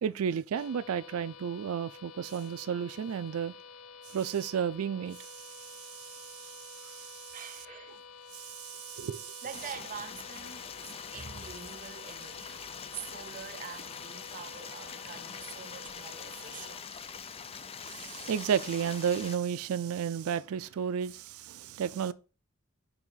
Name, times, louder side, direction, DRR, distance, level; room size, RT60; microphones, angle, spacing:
voice 1, 0.0-3.5 4.1-7.4 8.3-9.4 17.8-22.1, right 8 dB, 90° right, 0.4 m, -33 dB
sound 1, 0.5-16.8, left 6 dB, 90° left, 0.4 m, -50 dB
voice 2, 7.3-8.0 9.4-12.6 12.9-17.0, right 7 dB, 40° right, 0.5 m, -45 dB
Stream, 9.5-19.4, left 6 dB, 30° left, 0.4 m, -44 dB
5.3 x 4.9 x 3.9 m
head